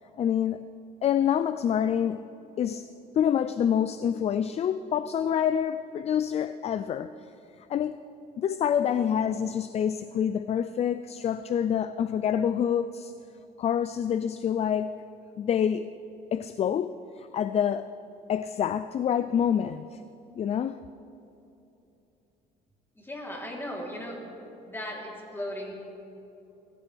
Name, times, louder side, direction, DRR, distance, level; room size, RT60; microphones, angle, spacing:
voice 1, 0.2-0.7 1.0-2.3 2.6-7.3 7.6-8.0 8.4-13.1 13.6-15.0 15.4-15.9 16.3-17.9 18.3-20.0 20.4-20.8, left 8 dB, 40° left, 0.4 m, -27 dB
voice 2, 23.0-24.2 24.6-25.8, left 1 dB, 15° left, 3.5 m, -37 dB
22.0 x 14.5 x 3.5 m
cardioid pair, 110°, 17 cm